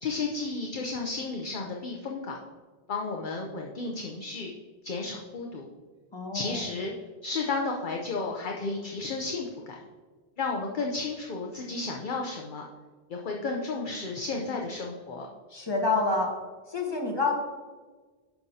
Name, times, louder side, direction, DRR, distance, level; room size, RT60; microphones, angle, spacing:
voice 1, 0.0-2.4 2.9-4.5 4.8-5.7 6.3-6.9 7.2-9.8 10.4-12.6 13.1-15.3, left 3 dB, 55° left, 1 dB, 0.8 m, -33 dB
voice 2, 6.1-6.6 15.5-16.4 16.7-17.3, left 3 dB, 25° left, 0 dB, 1.2 m, -27 dB
10.0 x 5.8 x 2.8 m, 1.4 s
omnidirectional pair, 1.1 m